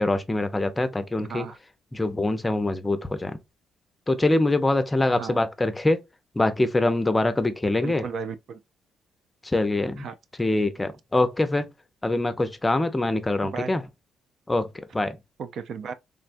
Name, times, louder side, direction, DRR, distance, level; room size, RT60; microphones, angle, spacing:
voice 1, 0.0-1.5 1.9-3.4 4.1-6.0 6.4-8.0 9.4-10.1 10.4-11.7 12.0-13.8 14.5-15.2, left 2 dB, 15° left, 0.5 m, -24 dB
voice 2, 1.2-1.6 5.1-5.4 7.8-8.6 10.0-10.2 13.4-13.7 15.4-15.9, right 6 dB, 65° right, 0.4 m, -35 dB
3.4 x 2.1 x 2.5 m
cardioid pair, 90°, 0 cm